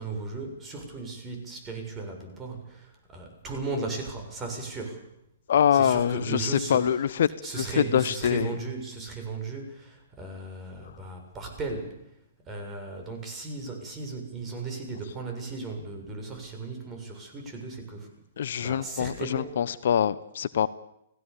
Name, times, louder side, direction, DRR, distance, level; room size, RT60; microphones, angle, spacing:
voice 1, 0.0-5.0 5.7-7.0 7.4-12.0 12.5-18.1 18.6-19.6, right 3 dB, 20° right, 3 dB, 7.3 m, -36 dB
voice 2, 5.5-7.3 7.6-8.5 18.4-20.7, left 9 dB, 60° left, 16 dB, 0.9 m, -24 dB
29.5 x 17.5 x 7.1 m, 0.82 s
figure-of-eight pair, 115°, 0 cm